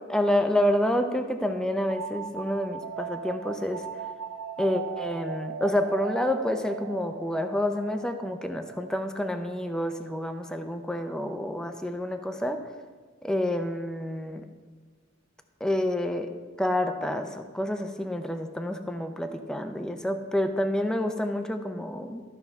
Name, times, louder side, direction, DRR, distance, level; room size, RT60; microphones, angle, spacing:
voice 1, 0.1-3.9 4.6-12.7 13.2-14.5 15.6-16.3 16.6-22.2, left 1 dB, 5° left, 6 dB, 0.4 m, -28 dB
sound 1, 1.9-11.3, right 7 dB, 75° right, 0.4 m, -39 dB
13.0 x 5.6 x 3.5 m, 1.5 s
head